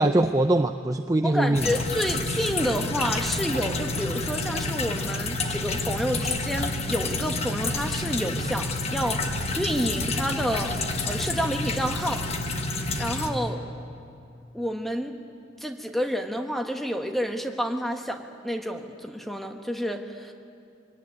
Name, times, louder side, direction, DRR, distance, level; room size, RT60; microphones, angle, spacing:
voice 1, 0.0-1.7, right 1 dB, 20° right, 7 dB, 0.5 m, -22 dB
voice 2, 1.2-9.3 9.6-10.7 11.0-12.2 13.0-13.6 14.5-15.2 15.6-20.3, equal, ahead, 4 dB, 1.3 m, -29 dB
sound 1, 1.5-13.3, left 2 dB, 35° left, 1.3 m, -29 dB
23.5 x 17.5 x 9.6 m, 2.6 s
head